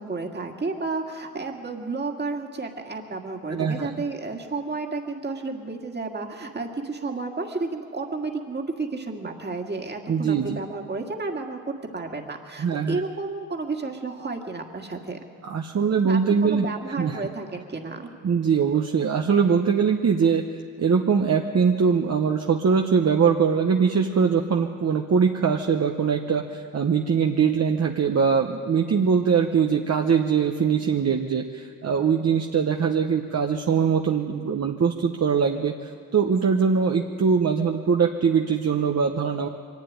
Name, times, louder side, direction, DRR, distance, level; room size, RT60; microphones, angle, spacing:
voice 1, 0.0-15.2 16.0-18.1, right 3 dB, 30° right, 2 dB, 2.0 m, -32 dB
voice 2, 3.5-3.9 10.1-10.6 12.6-13.0 15.4-17.2 18.2-20.5 20.8-39.5, right 6 dB, 55° right, 2 dB, 1.0 m, -22 dB
23.5 x 12.0 x 9.8 m, 2.1 s
wide cardioid pair, 105°, 32 cm